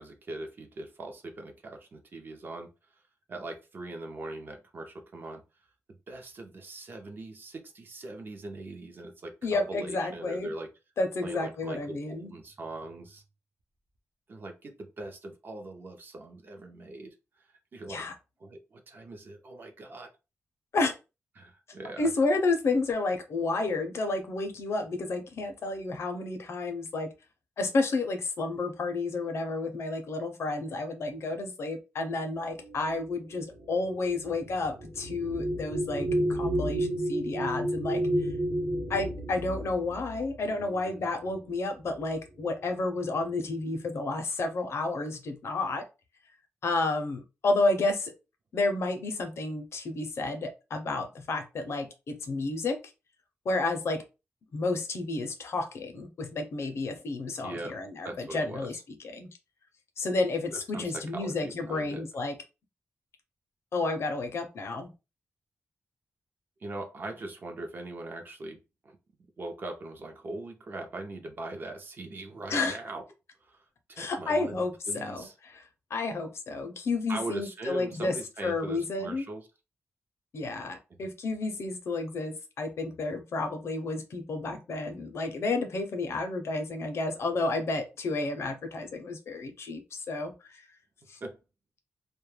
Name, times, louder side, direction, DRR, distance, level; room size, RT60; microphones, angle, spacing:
voice 1, 0.0-3.0 3.3-5.4 6.1-10.7 11.2-13.2 14.3-17.4 17.7-18.1 18.4-20.1 21.4-22.1 57.4-57.8 58.0-58.8 60.5-62.0 66.6-69.0 69.4-73.0 73.4-75.3 77.1-79.5 91.2-91.4, right 2 dB, 40° right, 5 dB, 0.5 m, -41 dB
voice 2, 9.4-10.5 11.0-12.3 17.9-18.1 20.7-20.9 22.0-27.1 27.6-38.3 38.9-45.8 46.6-48.1 48.5-52.8 53.5-54.0 54.5-58.8 59.0-59.3 60.0-62.3 63.7-64.9 72.5-72.8 74.0-78.1 78.4-79.2 80.3-90.6 91.1-91.2, left 3 dB, 60° left, 6 dB, 0.5 m, -31 dB
sound 1, 32.6-41.5 42.4-42.6 42.9-43.5, right 1 dB, 70° right, 0.9 m, -32 dB
2.2 x 2.1 x 3.0 m, 0.29 s
wide cardioid pair, 175°, 5 cm